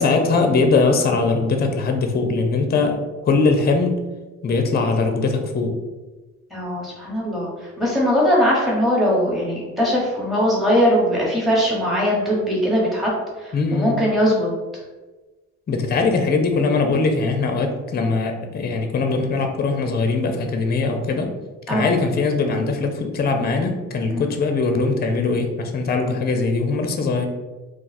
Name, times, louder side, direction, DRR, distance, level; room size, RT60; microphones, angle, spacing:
voice 1, 0.0-4.0 4.4-5.7 13.5-13.9 15.7-21.3 21.7-27.3, left 3 dB, 30° left, 5 dB, 0.5 m, -21 dB
voice 2, 6.5-13.1 13.4-14.5 21.7-22.0 24.1-24.3, equal, ahead, -5 dB, 1.0 m, -20 dB
2.4 x 2.3 x 4.0 m, 1.2 s
cardioid pair, 90°, 30 cm